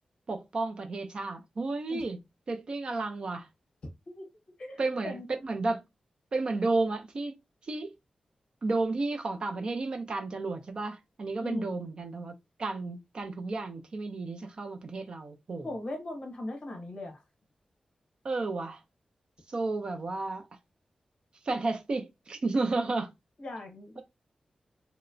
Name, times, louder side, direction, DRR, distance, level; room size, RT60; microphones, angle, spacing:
voice 1, 0.3-2.2 2.5-3.5 4.8-5.8 6.3-7.4 7.6-7.9 8.6-12.3 12.6-15.7 18.2-18.8 19.5-20.5 21.4-23.1, right 3 dB, 45° right, 0.4 m, -32 dB
voice 2, 4.6-5.3 11.4-11.8 15.6-17.2 23.4-24.0, left 1 dB, 50° left, 0.8 m, -38 dB
2.8 x 2.0 x 2.5 m
wide cardioid pair, 170°, 2 cm